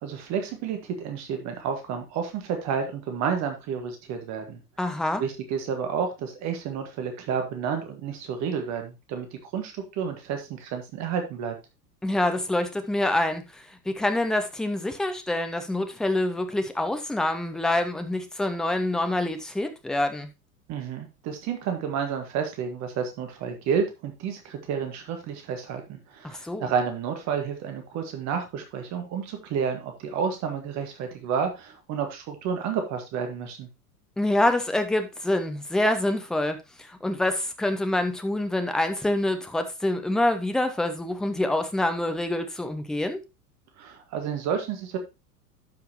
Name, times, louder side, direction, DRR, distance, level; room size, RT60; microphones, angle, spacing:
voice 1, 0.0-4.6 5.2-9.3 9.5-11.5 20.7-33.7 43.8-45.0, right 7 dB, 35° right, 5 dB, 1.6 m, -30 dB
voice 2, 4.8-5.2 12.0-20.3 26.2-26.7 34.2-36.6 36.9-43.2, left 1 dB, ahead, 7 dB, 0.4 m, -26 dB
12.0 x 5.7 x 2.9 m, 0.25 s
figure-of-eight pair, 90°, 47 cm